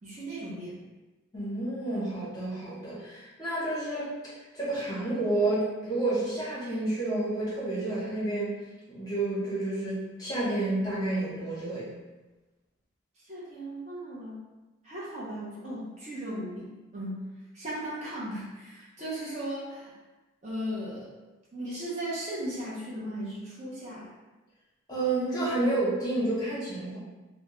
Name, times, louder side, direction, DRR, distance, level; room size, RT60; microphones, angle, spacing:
voice 1, 0.0-0.8 13.2-14.4 14.8-17.3 17.5-20.0 20.4-21.1 21.5-24.1, right 1 dB, 35° right, -7 dB, 0.5 m, -37 dB
voice 2, 1.3-4.1 4.5-8.5 8.9-11.9 24.9-27.0, right 2 dB, 20° left, -9 dB, 0.8 m, -30 dB
2.2 x 2.1 x 2.9 m, 1.1 s
head